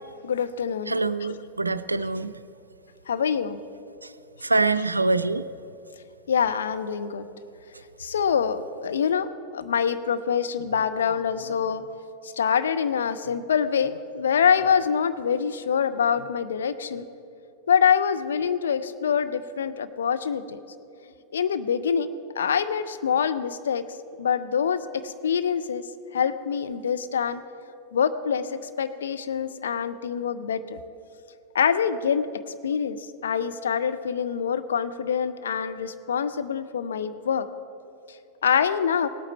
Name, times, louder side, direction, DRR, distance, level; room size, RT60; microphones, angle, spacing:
voice 1, 0.2-0.9 1.2-1.3 3.1-3.6 6.3-7.3 8.0-11.9 12.2-17.0 17.7-20.6 21.3-22.1 22.4-23.8 24.2-25.8 26.1-27.4 27.9-30.8 31.5-32.3 32.6-37.5 38.4-39.1, left 7 dB, 65° left, 11 dB, 0.5 m, -25 dB
voice 2, 0.9-2.3 4.4-5.4, right 3 dB, 80° right, 14 dB, 0.3 m, -24 dB
18.0 x 8.6 x 4.4 m, 2.8 s
figure-of-eight pair, 90°, 0 cm